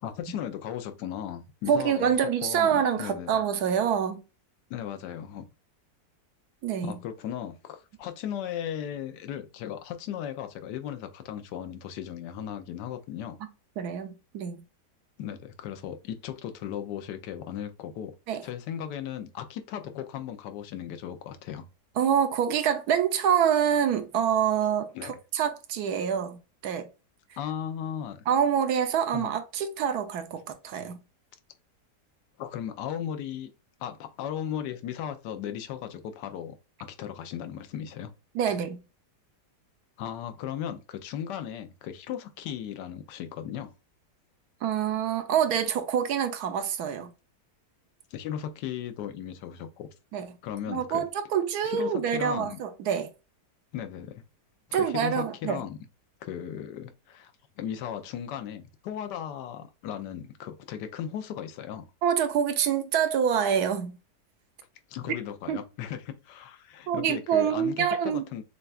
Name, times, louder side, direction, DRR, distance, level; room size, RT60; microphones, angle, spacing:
voice 1, 0.0-2.1 2.4-3.4 4.7-5.5 6.8-13.4 15.2-18.1 18.4-21.7 24.9-25.2 27.4-28.2 29.1-29.3 32.4-33.5 33.8-38.1 40.0-43.7 48.1-49.9 50.4-51.1 51.6-52.6 53.7-54.2 54.7-55.8 56.2-61.9 64.9-68.4, left 9 dB, 85° left, 1.2 m, -36 dB
voice 2, 1.7-4.2 6.6-6.9 13.8-14.6 18.3-18.4 22.0-26.4 26.6-26.9 28.3-31.0 38.3-38.8 44.6-47.1 50.1-50.3 50.7-53.1 54.7-55.6 62.0-64.0 65.5-65.6 66.9-68.2, right 8 dB, 75° right, 1.1 m, -26 dB
6.6 x 2.3 x 2.4 m
omnidirectional pair, 1.8 m